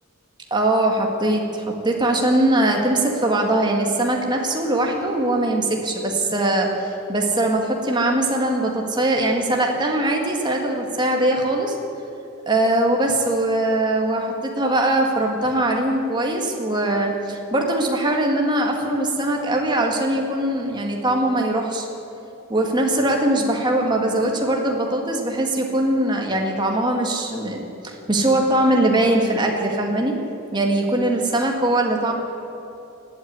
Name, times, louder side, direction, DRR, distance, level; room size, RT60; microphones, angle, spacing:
voice 1, 0.5-11.8 12.5-21.9 22.5-30.2 30.5-32.1, right 1 dB, 20° right, 1 dB, 1.8 m, -21 dB
17.5 x 8.7 x 9.4 m, 2.9 s
head